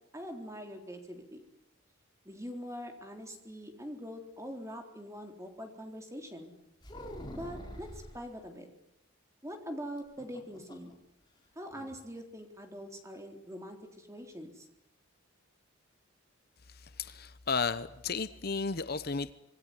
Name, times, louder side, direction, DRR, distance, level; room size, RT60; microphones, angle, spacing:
voice 1, 0.1-1.4 2.3-6.5 7.3-8.7 9.4-10.9 11.6-14.7, equal, 15° right, 4 dB, 3.8 m, -43 dB
sound 1, 6.8-8.2 10.0-10.9 11.2-11.3 11.7-12.0, equal, 20° left, 4.1 m, -45 dB
voice 2, 16.7-19.3, left 4 dB, 45° left, 13 dB, 0.9 m, -34 dB
27.0 x 20.0 x 9.8 m, 0.81 s
head